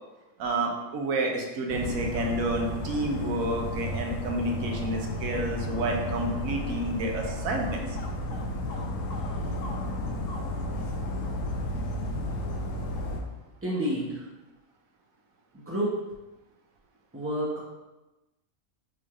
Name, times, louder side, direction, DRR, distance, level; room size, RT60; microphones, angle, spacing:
voice 1, 0.4-8.0, right 2 dB, 75° right, 1 dB, 1.1 m, -30 dB
Dog, 1.7-13.2, left 1 dB, 70° left, 0.9 m, -32 dB
voice 2, 13.6-14.3 15.5-15.9 17.1-17.7, equal, 20° right, -7 dB, 0.3 m, -29 dB
5.9 x 3.3 x 2.4 m, 1.1 s
omnidirectional pair, 1.5 m